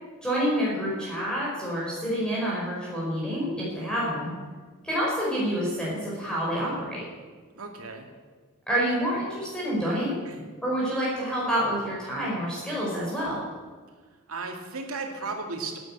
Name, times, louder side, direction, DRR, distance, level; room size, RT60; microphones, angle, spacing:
voice 1, 0.2-4.3 4.8-7.0 8.7-10.2 10.6-13.4, equal, 5° left, -7 dB, 4.8 m, -28 dB
voice 2, 7.5-8.1 10.2-10.4 14.3-15.8, right 3 dB, 75° right, 2 dB, 2.4 m, -35 dB
12.0 x 9.9 x 8.8 m, 1.5 s
head